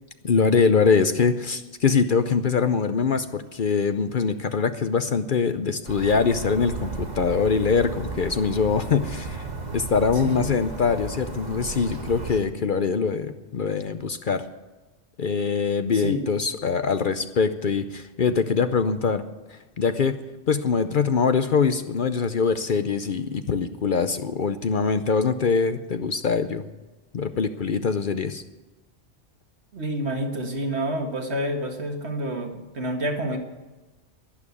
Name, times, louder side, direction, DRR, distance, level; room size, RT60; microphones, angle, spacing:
voice 1, 0.2-14.4 15.2-19.2 19.5-20.2 20.5-26.6 27.1-28.4, left 5 dB, 50° left, 10 dB, 0.7 m, -23 dB
sound 1, 5.8-12.4, right 3 dB, 35° right, 1.5 m, -34 dB
voice 2, 10.1-10.5 15.9-16.3 29.7-33.4, right 1 dB, 65° right, 4 dB, 2.0 m, -28 dB
11.5 x 11.0 x 8.4 m, 1.2 s
omnidirectional pair, 1.2 m